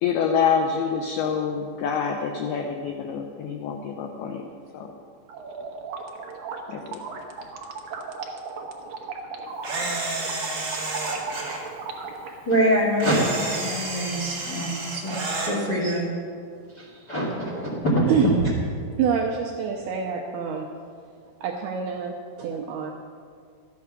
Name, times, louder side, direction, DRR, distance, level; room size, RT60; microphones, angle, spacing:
voice 1, 0.0-4.4 4.7-4.9 6.7-7.0, left 6 dB, 85° left, 3 dB, 2.2 m, -26 dB
sound 1, 5.3-12.3, right 4 dB, 70° right, 2.2 m, -36 dB
Camera, 9.6-11.6 13.0-15.5, right 2 dB, 40° right, 2.4 m, -30 dB
voice 2, 12.4-16.1 16.7-18.0, equal, 60° left, -4 dB, 1.1 m, -25 dB
voice 3, 19.0-20.7 21.4-22.9, right 7 dB, 85° right, 0 dB, 2.3 m, -26 dB
13.0 x 9.5 x 6.0 m, 2.2 s
omnidirectional pair, 5.5 m